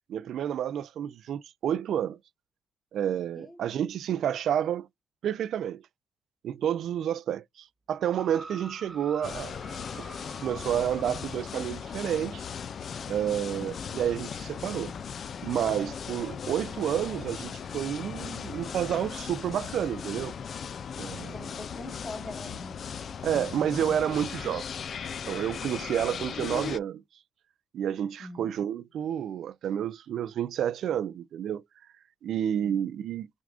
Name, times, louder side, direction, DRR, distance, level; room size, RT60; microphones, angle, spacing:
voice 1, 0.1-2.2 2.9-4.9 5.2-5.8 6.4-9.6 10.4-12.4 13.1-14.9 15.4-20.3 21.0-21.4 23.2-24.7 25.3-27.0 27.7-31.6 32.2-33.3, right 9 dB, 75° right, 0.3 m, -30 dB
sound 1, 8.0-11.7 12.5-12.6, right 2 dB, 20° right, 0.5 m, -46 dB
sound 2, 9.2-26.8, left 7 dB, 50° left, 0.3 m, -38 dB
voice 2, 21.3-22.7 28.2-28.5 32.6-32.8, left 2 dB, 25° left, 1.6 m, -42 dB
5.9 x 2.5 x 2.4 m
wide cardioid pair, 160°, 0 cm